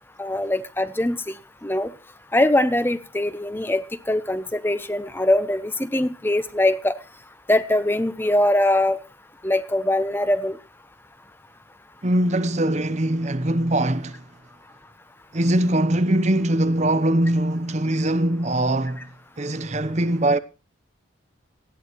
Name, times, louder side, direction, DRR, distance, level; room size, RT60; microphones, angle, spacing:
voice 1, 0.2-1.4 1.6-1.9 2.3-3.8 4.1-6.9 7.5-9.0 9.4-10.6, left 1 dB, 10° left, 0.8 m, -22 dB
voice 2, 12.0-14.2 15.3-19.1 19.4-20.4, right 1 dB, 35° right, 0.8 m, -22 dB
19.0 x 14.0 x 3.1 m
head